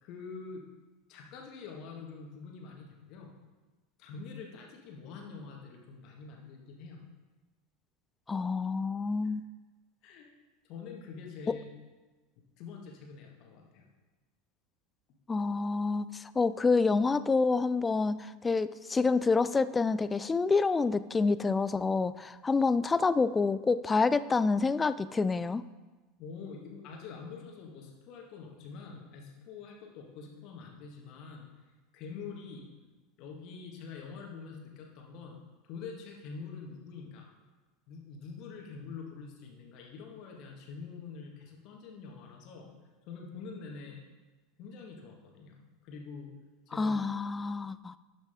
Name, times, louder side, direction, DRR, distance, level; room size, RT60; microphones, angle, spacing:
voice 1, 0.0-0.6 1.1-3.3 4.0-7.0 9.2-9.3 10.0-10.3 10.6-11.7 12.6-13.8 26.2-31.5 31.9-32.7 33.2-37.3 37.9-42.7 43.1-44.0 44.6-46.3 46.7-47.0, left 5 dB, 45° left, 1 dB, 1.7 m, -45 dB
voice 2, 8.3-9.4 11.5-11.6 15.3-25.6 46.7-48.0, left 4 dB, 15° left, 15 dB, 0.3 m, -28 dB
11.5 x 6.2 x 3.7 m, 1.2 s
figure-of-eight pair, 80°, 0 cm